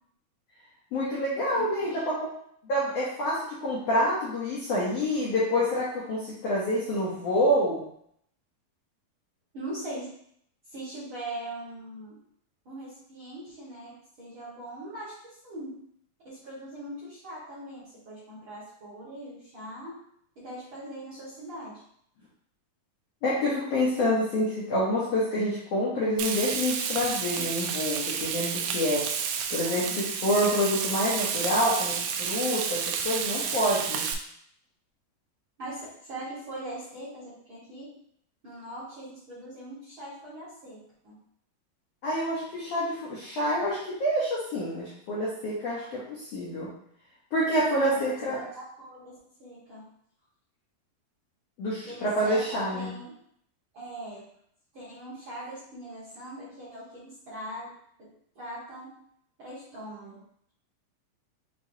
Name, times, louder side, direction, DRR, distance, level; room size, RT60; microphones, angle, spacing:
voice 1, 0.9-2.0 2.6-7.8 23.2-29.1 29.5-34.1 42.0-46.7 47.3-48.4 51.6-52.9, equal, 80° left, -7 dB, 1.4 m, -27 dB
voice 2, 1.5-2.3 9.5-10.1 10.7-12.2 12.6-15.8 16.2-20.0 20.3-21.8 29.6-30.1 35.6-38.0 38.4-41.2 45.7-46.0 47.9-49.9 51.8-53.2 53.7-54.3 54.7-57.7 58.0-58.1 58.3-59.0 59.4-60.2, right 1 dB, 50° right, -10 dB, 1.5 m, -41 dB
Frying (food), 26.2-34.1, right 7 dB, 85° right, 2.3 m, -30 dB
6.6 x 2.8 x 2.7 m, 0.68 s
omnidirectional pair, 4.3 m